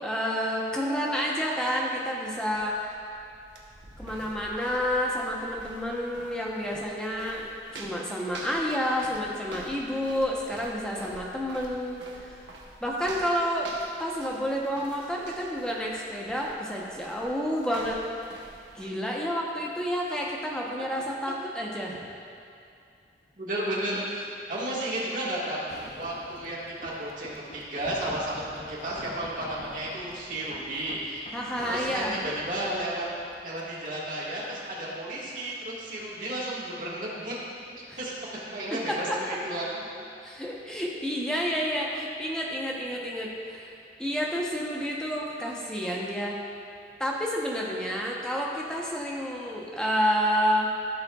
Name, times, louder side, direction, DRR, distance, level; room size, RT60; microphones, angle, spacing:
voice 1, 0.0-2.7 4.0-7.5 7.8-12.5 12.8-13.7 14.0-18.0 18.7-22.1 31.3-32.1 37.9-38.0 38.9-39.4 40.2-43.7 44.0-46.4 47.0-50.7, equal, 5° left, -3 dB, 0.9 m, -29 dB
sound 1, 2.5-18.9, right 2 dB, 90° right, 1.1 m, -47 dB
voice 2, 23.4-31.2 31.6-33.1 33.4-37.4 38.0-38.1 38.5-39.8 42.6-42.7, right 1 dB, 45° right, -6 dB, 1.8 m, -33 dB
sound 2, 25.7-33.9 34.4-34.5, left 2 dB, 40° left, 0.5 m, -47 dB
14.5 x 6.4 x 2.4 m, 2.5 s
head